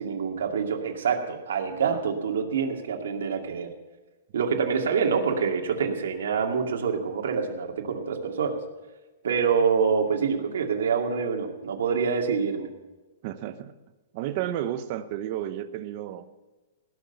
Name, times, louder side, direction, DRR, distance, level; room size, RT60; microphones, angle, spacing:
voice 1, 0.0-3.7 4.3-8.6 9.2-12.7, right 6 dB, 85° right, 2 dB, 2.2 m, -26 dB
voice 2, 13.2-13.7 14.1-16.3, right 11 dB, 35° right, 12 dB, 0.8 m, -32 dB
18.0 x 6.4 x 7.0 m, 1.2 s
hypercardioid pair, 170°, 0 cm